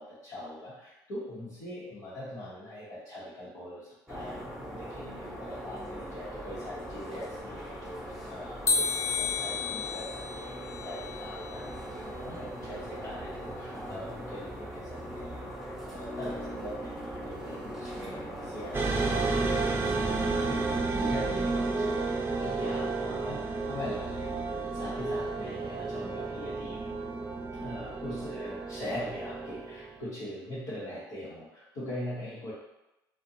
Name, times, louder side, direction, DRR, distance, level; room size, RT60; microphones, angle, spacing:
voice 1, 0.0-4.4 4.7-24.4 24.7-26.8 27.6-32.5, left 1 dB, 80° left, -12 dB, 0.9 m, -42 dB
sound 1, 4.1-20.8, equal, ahead, 0.8 m, -40 dB
sound 2, 8.7-11.8, left 4 dB, 30° left, 0.4 m, -32 dB
sound 3, 18.7-30.0, right 3 dB, 25° right, 0.5 m, -31 dB
2.5 x 2.2 x 2.7 m, 0.94 s
hypercardioid pair, 60°, 9 cm